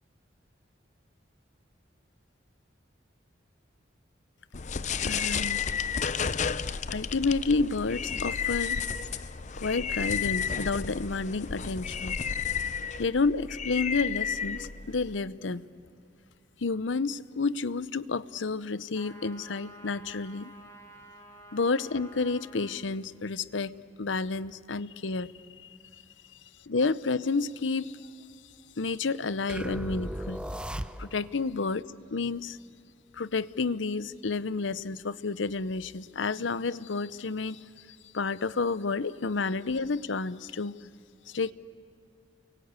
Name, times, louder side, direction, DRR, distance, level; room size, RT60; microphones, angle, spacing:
sound 1, 4.5-15.2, left 6 dB, 40° left, 0.6 m, -32 dB
voice 1, 5.0-5.6 6.9-8.8 9.6-12.2 13.0-15.7 16.6-20.5 21.5-25.3 26.7-28.1 28.8-30.5 31.0-32.6 33.1-37.7 38.1-40.8 41.3-41.5, left 4 dB, 90° left, 16 dB, 0.8 m, -30 dB
sound 2, 18.9-22.8, right 1 dB, 15° left, 3.1 m, -50 dB
sound 3, 29.5-31.4, equal, 5° right, 0.6 m, -36 dB
29.5 x 24.0 x 8.3 m, 2.3 s
head